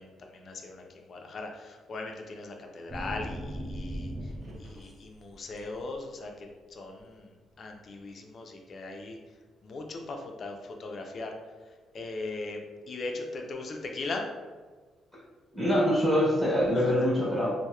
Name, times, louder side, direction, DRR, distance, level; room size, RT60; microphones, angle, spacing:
voice 1, 0.0-4.3 4.6-9.2 9.6-11.4 11.9-12.6 12.9-14.3 16.7-16.9, left 3 dB, 50° left, 3 dB, 0.4 m, -39 dB
sound 1, 2.9-4.9 5.3-5.8, equal, 30° right, 0.4 m, -38 dB
voice 2, 15.5-17.5, equal, 5° right, -10 dB, 1.1 m, -24 dB
2.8 x 2.0 x 2.2 m, 1.4 s
cardioid pair, 90°, 0 cm